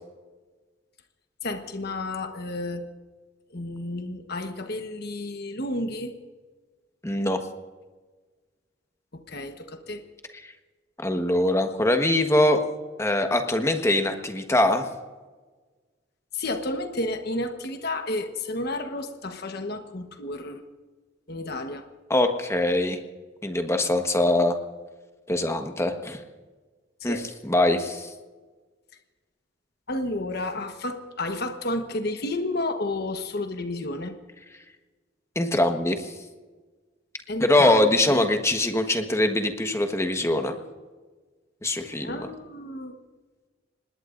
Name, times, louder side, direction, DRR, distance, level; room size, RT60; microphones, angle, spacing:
voice 1, 1.4-2.9 3.5-6.2 9.1-10.0 16.3-20.6 21.3-21.9 27.0-27.3 29.9-34.1 37.3-38.3 42.0-43.0, left 2 dB, 55° left, 6 dB, 1.2 m, -31 dB
voice 2, 7.0-7.4 11.0-12.6 13.0-14.8 22.1-23.0 23.4-24.5 25.3-26.2 27.0-28.1 35.3-36.1 37.4-40.5 41.6-42.2, left 1 dB, 15° left, 5 dB, 1.3 m, -23 dB
26.5 x 20.5 x 2.6 m, 1.3 s
head